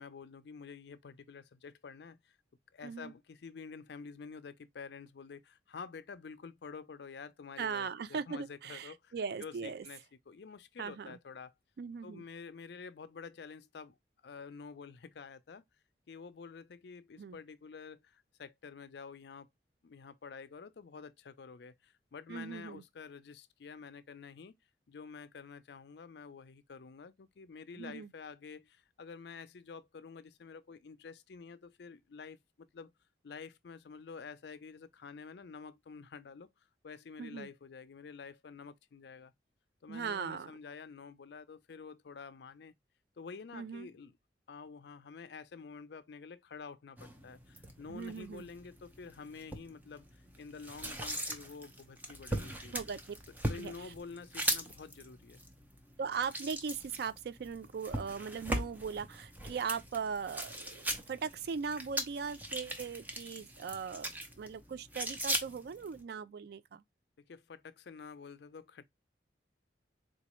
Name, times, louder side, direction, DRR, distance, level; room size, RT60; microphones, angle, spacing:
voice 1, 0.0-2.4 2.7-9.1 9.4-10.0 10.3-11.5 12.0-13.9 14.2-15.6 16.1-19.5 19.8-24.5 24.9-32.9 33.2-36.5 36.8-39.3 39.8-42.7 43.2-44.2 44.5-52.7 53.5-55.4 67.2-68.8, left 5 dB, 65° left, 0.4 m, -49 dB
voice 2, 7.6-9.9 10.8-11.2 11.8-12.2 17.2-17.4 22.3-22.8 27.8-28.1 37.2-37.5 39.9-40.6 43.5-43.9 47.9-48.5 52.7-53.2 53.6-53.7 56.0-66.8, right 6 dB, 60° right, 0.3 m, -39 dB
sound 1, 47.0-66.0, right 1 dB, 10° right, 0.5 m, -40 dB
4.0 x 2.3 x 2.9 m
head